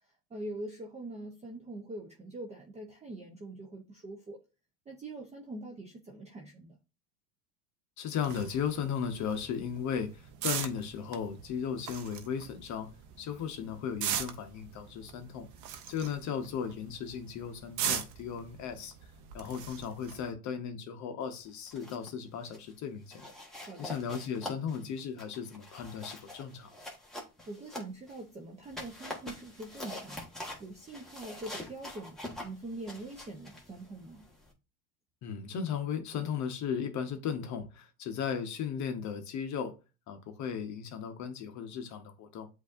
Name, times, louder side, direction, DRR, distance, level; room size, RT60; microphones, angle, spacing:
voice 1, 0.3-4.5 4.9-6.8 23.6-24.0 27.5-30.2 30.6-34.3, right 2 dB, 15° right, 0.7 m, -43 dB
voice 2, 8.0-12.9 13.2-15.5 15.9-18.9 19.3-23.3 23.8-26.7 35.2-39.7 40.1-42.5, left 7 dB, 40° left, 0.8 m, -36 dB
sound 1, 8.2-20.3, right 9 dB, 45° right, 0.8 m, -40 dB
sound 2, 21.5-22.1 22.4-22.7 23.1-28.2 28.6-34.5, left 1 dB, ahead, 1.3 m, -45 dB
7.9 x 2.7 x 2.5 m
supercardioid pair, 110°, 43 cm